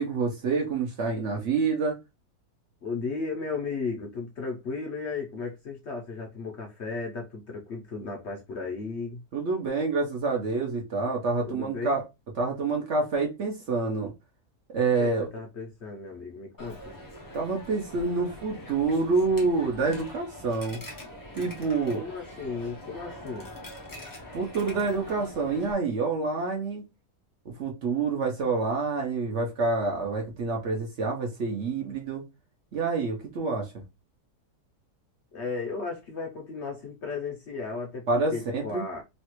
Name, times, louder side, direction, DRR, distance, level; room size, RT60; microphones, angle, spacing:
voice 1, 0.0-2.0 9.3-12.0 12.4-14.1 14.7-15.3 17.3-20.8 21.3-22.0 24.3-26.8 27.5-32.2 32.7-33.7 38.1-38.8, right 4 dB, 55° right, 1.0 m, -27 dB
voice 2, 2.8-9.2 11.4-12.0 15.0-17.0 21.9-23.5 35.3-39.0, left 4 dB, 55° left, 0.8 m, -35 dB
Coin (dropping), 16.6-25.7, left 1 dB, 30° left, 0.4 m, -43 dB
3.2 x 2.4 x 3.0 m
omnidirectional pair, 1.7 m